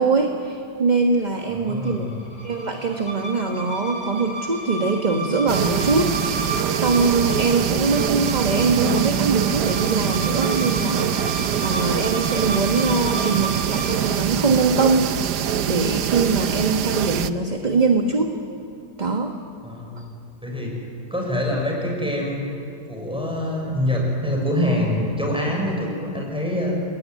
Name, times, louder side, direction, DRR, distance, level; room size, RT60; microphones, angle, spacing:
voice 1, 0.0-2.1 2.4-6.2 6.7-15.1 15.7-18.4 19.0-19.4 20.0-20.1, right 4 dB, 25° right, 3 dB, 1.4 m, -22 dB
sound 1, 1.5-14.2, right 1 dB, 60° left, 4.0 m, -33 dB
voice 2, 1.5-2.2 19.6-20.0 20.4-20.8 21.1-22.4 22.9-26.7, left 1 dB, 5° right, -1 dB, 6.7 m, -25 dB
sound 2, 5.5-17.3, right 9 dB, 75° right, 1.4 m, -24 dB
29.5 x 21.0 x 9.4 m, 2.6 s
omnidirectional pair, 1.8 m